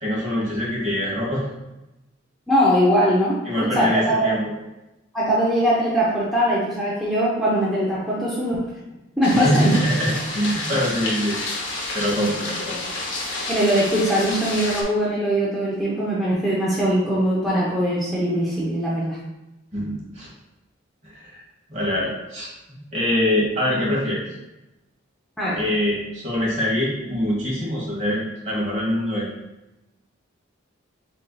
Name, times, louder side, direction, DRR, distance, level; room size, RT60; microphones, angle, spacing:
voice 1, 0.0-1.5 3.4-4.5 9.3-11.4 11.9-12.8 19.7-20.3 21.0-21.4 21.7-24.2 25.5-29.3, equal, 35° right, -4 dB, 1.3 m, -24 dB
voice 2, 2.5-3.4 3.7-4.4 5.1-8.6 9.2-9.7 13.5-19.2 25.4-25.6, equal, ahead, -8 dB, 0.6 m, -21 dB
sound 1, 9.2-14.8, left 2 dB, 60° left, 0.7 m, -30 dB
7.2 x 2.6 x 2.3 m, 0.98 s
head